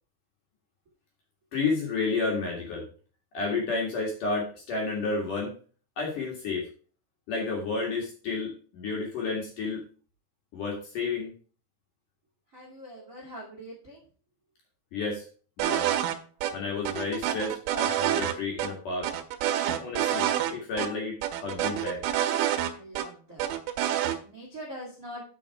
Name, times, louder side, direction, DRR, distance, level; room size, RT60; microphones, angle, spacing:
voice 1, 1.5-2.8 3.3-5.5 6.0-6.7 7.3-9.8 10.5-11.3 14.9-15.3 15.6-15.9 16.5-19.1 19.6-22.0, left 4 dB, 55° left, -2 dB, 2.8 m, -31 dB
voice 2, 12.5-14.0 22.7-23.5 24.2-25.2, equal, 35° right, -3 dB, 1.2 m, -43 dB
sound 1, 15.6-16.2 16.4-16.5 16.9-18.3 18.6-18.7 19.0-20.5 20.8-20.9 21.2-23.1 23.4-24.2, right 11 dB, 90° right, 3.2 m, -27 dB
7.6 x 5.9 x 4.7 m, 0.41 s
omnidirectional pair, 5.5 m